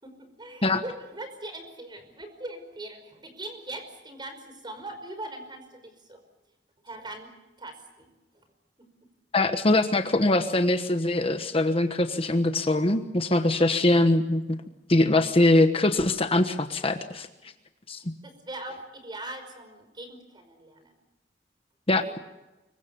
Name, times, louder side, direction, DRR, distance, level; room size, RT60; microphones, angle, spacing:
voice 1, 0.0-6.2 6.8-7.3 7.6-8.1 8.3-8.4 8.8-8.9 17.4-17.5 18.2-21.0, right 1 dB, 25° right, 8 dB, 5.2 m, -41 dB
voice 2, 9.3-14.4 14.9-17.3 17.9-18.1 21.9-22.2, left 2 dB, 35° left, 8 dB, 1.2 m, -22 dB
25.5 x 23.5 x 7.0 m, 1.0 s
head